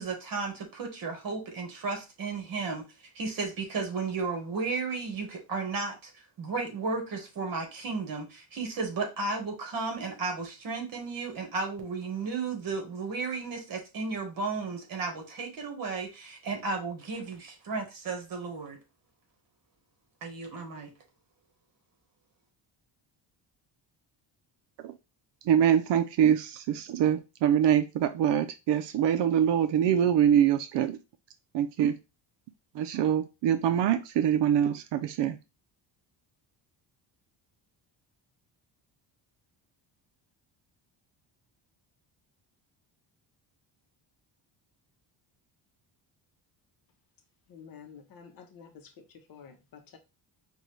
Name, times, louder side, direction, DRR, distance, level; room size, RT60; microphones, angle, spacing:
voice 1, 0.0-2.9 3.1-6.1 6.4-18.8 20.2-20.9, right 4 dB, 50° right, 3 dB, 1.5 m, -34 dB
voice 2, 25.4-31.0 31.5-32.0 32.7-35.4, right 9 dB, 70° right, 9 dB, 0.5 m, -24 dB
voice 3, 47.5-50.0, left 6 dB, 55° left, 6 dB, 0.8 m, -50 dB
5.3 x 2.3 x 3.2 m, 0.27 s
cardioid pair, 160°, 44 cm